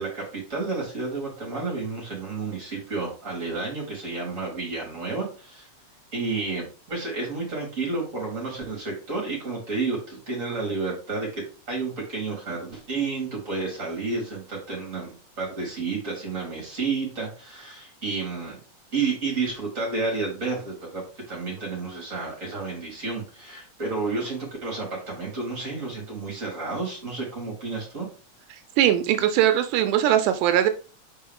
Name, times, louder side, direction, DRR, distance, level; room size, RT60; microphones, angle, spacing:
voice 1, 0.0-5.7 6.1-15.1 15.4-18.6 18.9-28.1, right 4 dB, 25° right, -2 dB, 3.5 m, -31 dB
voice 2, 28.8-30.7, right 11 dB, 90° right, 8 dB, 2.2 m, -20 dB
5.6 x 4.6 x 3.6 m, 0.36 s
omnidirectional pair, 3.6 m